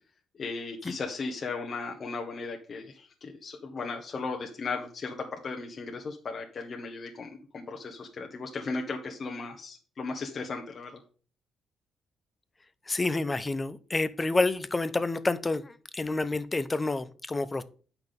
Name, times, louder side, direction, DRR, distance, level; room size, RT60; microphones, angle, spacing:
voice 1, 0.3-11.0, left 4 dB, 45° left, 1.4 m, -36 dB
voice 2, 12.9-17.6, left 2 dB, 20° left, 0.7 m, -29 dB
8.7 x 5.9 x 3.8 m
cardioid pair, 90°, 0 cm